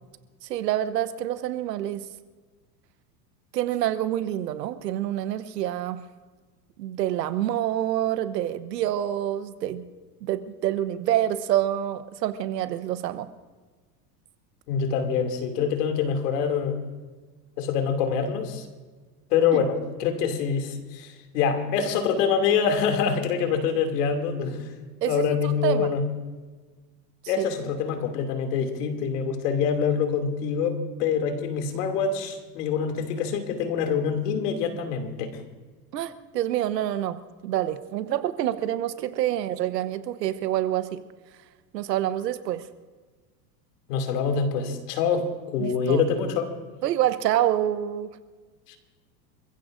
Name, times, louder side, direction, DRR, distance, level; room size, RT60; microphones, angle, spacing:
voice 1, 0.4-2.0 3.5-6.0 6.8-9.8 10.2-13.3 19.5-19.6 25.0-25.9 27.4-27.5 35.9-41.0 41.7-42.7 45.6-46.0 46.8-48.1, right 12 dB, 90° right, 12 dB, 1.1 m, -27 dB
voice 2, 14.7-16.8 17.6-18.6 19.3-24.7 25.0-26.0 27.3-35.4 43.9-46.5 48.7-48.8, left 6 dB, 75° left, 5 dB, 2.8 m, -25 dB
27.5 x 15.5 x 2.6 m, 1.4 s
supercardioid pair, 110°, 48 cm